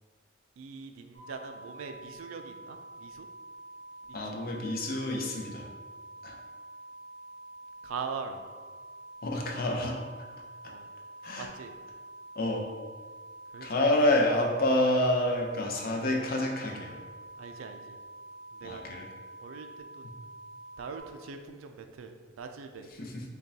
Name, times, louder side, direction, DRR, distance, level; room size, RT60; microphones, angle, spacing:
voice 1, 0.6-3.3 4.0-4.4 7.8-8.4 10.6-10.9 11.4-11.7 13.5-14.2 17.4-18.0 18.5-18.8 19.4-20.1 20.8-22.9, right 5 dB, 85° right, 6 dB, 0.3 m, -42 dB
sound 1, 1.1-21.0, right 1 dB, 30° left, 1.3 m, -47 dB
voice 2, 4.1-5.7 6.2-6.4 9.2-10.0 11.2-11.5 12.4-12.6 13.6-17.0 18.6-19.1 23.0-23.2, left 1 dB, 50° left, 0 dB, 0.5 m, -28 dB
5.1 x 2.3 x 2.7 m, 1.5 s
head